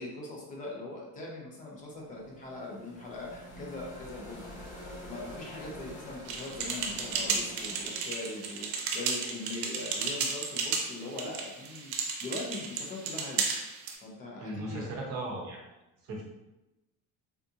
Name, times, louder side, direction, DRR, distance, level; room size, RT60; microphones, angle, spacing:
voice 1, 0.0-4.6 5.0-11.9 12.2-13.5 14.0-14.9, left 2 dB, 20° left, -1 dB, 0.4 m, -41 dB
sound 1, 1.8-9.8, left 1 dB, 85° left, 1.4 m, -47 dB
sound 2, 6.3-14.0, right 5 dB, 75° right, 0.7 m, -33 dB
voice 2, 14.4-15.6 16.1-16.2, right 1 dB, 40° right, -1 dB, 0.7 m, -36 dB
3.5 x 2.5 x 2.7 m, 0.97 s
cardioid pair, 175°, 41 cm